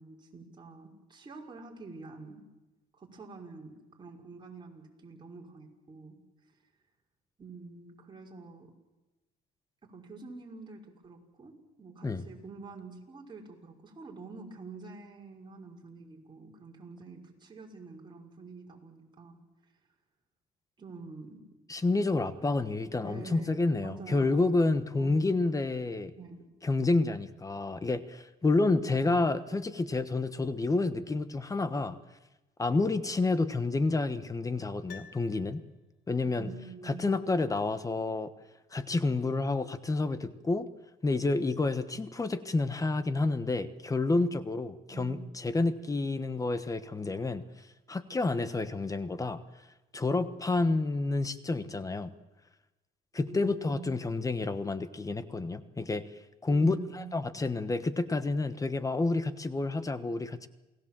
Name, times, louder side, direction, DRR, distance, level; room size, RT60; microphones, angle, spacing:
voice 1, 0.0-2.4 2.9-6.2 7.4-8.7 9.8-19.4 20.8-21.4 23.0-25.3 26.2-26.5 28.9-29.6 36.3-37.1 44.9-45.3 53.3-54.0 56.5-57.5, right 4 dB, 25° right, -2 dB, 5.4 m, -47 dB
voice 2, 21.7-26.1 26.6-32.0 32.6-35.6 36.1-36.5 36.8-38.3 38.7-40.7 41.0-47.4 47.9-49.4 49.9-52.1 53.1-56.0 56.4-60.5, left 3 dB, 20° left, 12 dB, 1.2 m, -29 dB
Piano, 34.9-36.1 36.4-36.5, left 7 dB, 75° left, 1.3 m, -52 dB
28.5 x 18.0 x 7.6 m, 1.1 s
cardioid pair, 110°, 17 cm